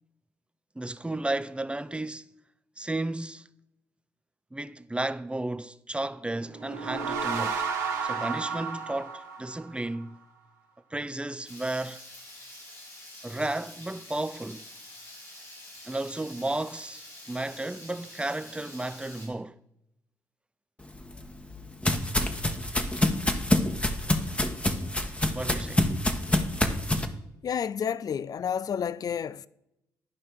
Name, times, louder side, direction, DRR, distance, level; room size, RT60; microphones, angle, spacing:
voice 1, 0.8-2.3 2.8-3.5 4.5-7.6 8.0-10.2 10.9-12.0 13.2-14.7 15.9-19.6 25.3-25.8, right 2 dB, 10° right, 0.5 m, -33 dB
sound 1, 6.5-10.0, right 5 dB, 90° right, 1.0 m, -32 dB
Water tap faucet / Liquid, 11.4-19.3, left 1 dB, 90° left, 3.9 m, -47 dB
sound 2, 20.9-27.1, left 1 dB, 15° left, 1.2 m, -27 dB
voice 2, 27.4-29.5, left 8 dB, 45° left, 0.4 m, -30 dB
11.5 x 5.5 x 4.7 m
hypercardioid pair, 45°, 9 cm